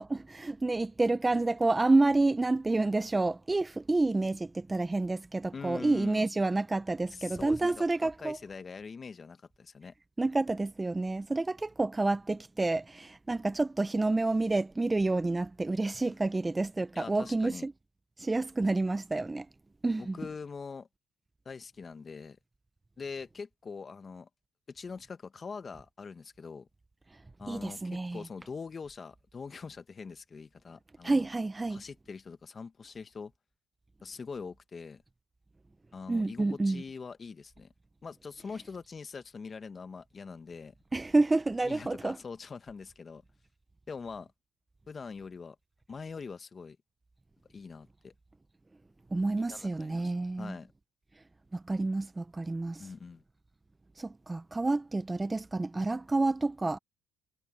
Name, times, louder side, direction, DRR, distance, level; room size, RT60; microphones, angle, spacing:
voice 1, 0.0-8.4 10.2-17.7 18.2-19.5 19.8-20.2 27.5-28.2 31.0-31.8 36.1-36.8 40.9-42.2 49.1-50.6 51.5-52.8 54.0-56.8, right 2 dB, 20° right, 1.0 m, -29 dB
voice 2, 5.5-6.3 7.1-9.9 16.9-17.7 20.0-20.9 21.4-22.4 23.0-24.3 24.7-26.7 27.4-31.3 31.7-33.3 34.0-35.0 35.9-37.7 38.0-40.7 41.6-43.2 43.9-44.3 44.9-45.6 45.9-46.8 47.5-48.1 49.4-50.1 50.4-50.7 52.8-53.2, left 5 dB, 35° left, 1.4 m, -43 dB
supercardioid pair, 75°, 0 cm